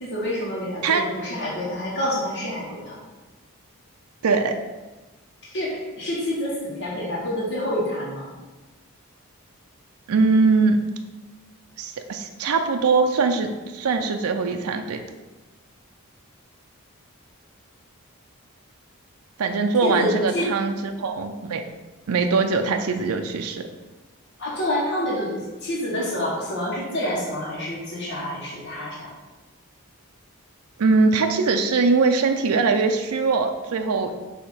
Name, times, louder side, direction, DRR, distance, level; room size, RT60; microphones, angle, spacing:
voice 1, 0.0-2.9 5.5-8.3 19.8-20.5 24.4-29.1, left 1 dB, 50° left, -5 dB, 1.4 m, -27 dB
voice 2, 4.2-4.6 10.1-10.8 11.8-15.0 19.4-21.6 22.1-23.7 30.8-34.1, right 4 dB, 80° right, 5 dB, 0.5 m, -21 dB
6.4 x 2.9 x 5.4 m, 1.2 s
head